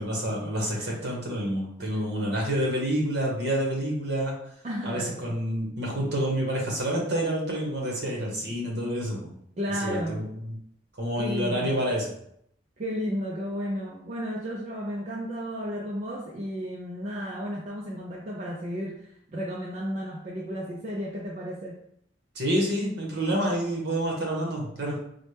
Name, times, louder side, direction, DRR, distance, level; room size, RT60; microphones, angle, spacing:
voice 1, 0.0-4.3 4.8-9.3 9.8-10.2 11.0-12.1 22.3-25.0, equal, 55° right, -1 dB, 1.0 m, -28 dB
voice 2, 0.7-1.1 4.6-5.3 9.6-10.3 11.2-11.8 12.8-21.8, equal, 35° right, -2 dB, 0.4 m, -33 dB
4.1 x 2.1 x 3.2 m, 0.71 s
head